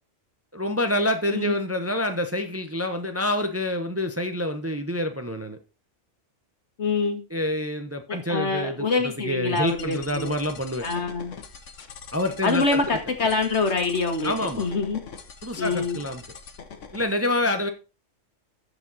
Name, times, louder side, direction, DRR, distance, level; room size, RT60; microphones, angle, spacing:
voice 1, 0.5-5.6 7.3-8.9 9.2-10.9 12.1-12.8 14.2-14.7 15.4-16.2 16.9-17.7, left 1 dB, 15° right, 7 dB, 0.7 m, -27 dB
voice 2, 6.8-7.2 8.1-10.4 10.8-11.4 12.4-15.0 15.6-16.0, left 4 dB, 65° left, 5 dB, 2.0 m, -25 dB
sound 1, 9.6-17.0, left 5 dB, 85° left, 1.5 m, -43 dB
13.5 x 5.0 x 4.1 m, 0.32 s
omnidirectional pair, 1.2 m